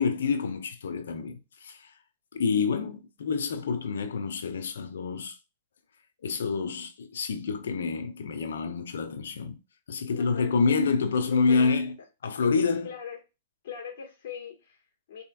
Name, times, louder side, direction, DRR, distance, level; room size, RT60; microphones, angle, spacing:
voice 1, 0.0-1.9 2.3-5.4 6.2-9.6 9.9-11.9 12.2-12.9, left 5 dB, 80° left, 0.7 m, -27 dB
voice 2, 10.1-10.8 11.3-11.9 12.8-13.2 13.6-15.2, left 7 dB, 60° left, 1.5 m, -41 dB
4.2 x 2.9 x 2.3 m
hypercardioid pair, 130°, 0 cm